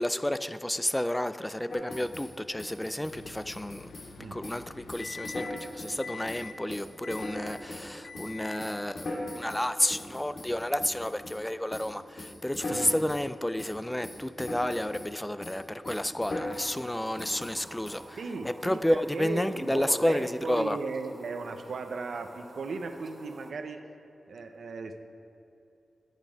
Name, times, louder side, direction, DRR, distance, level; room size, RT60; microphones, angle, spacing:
voice 1, 0.0-3.9 4.3-18.2 18.4-20.8, left 1 dB, 10° left, 12 dB, 0.3 m, -31 dB
sound 1, 1.7-2.3 2.6-4.1 4.4-4.6 4.9-6.0 6.3-7.9 8.1-11.4 11.7-11.9 12.2-13.3 13.6-13.8 14.0-15.1 15.4-15.6 15.9-16.9 17.2-18.0, left 1 dB, 70° left, 1.9 m, -39 dB
Microwave oven, 3.1-5.7 6.0-6.6 7.0-7.6 8.0-8.7, left 5 dB, 85° left, 0.4 m, -45 dB
sound 2, 16.4-23.5, right 2 dB, 60° right, 1.1 m, -51 dB
voice 2, 18.2-23.8 24.3-25.0, right 4 dB, 75° right, 7 dB, 0.7 m, -36 dB
10.0 x 8.3 x 5.1 m, 2.9 s
cardioid pair, 70°, 0 cm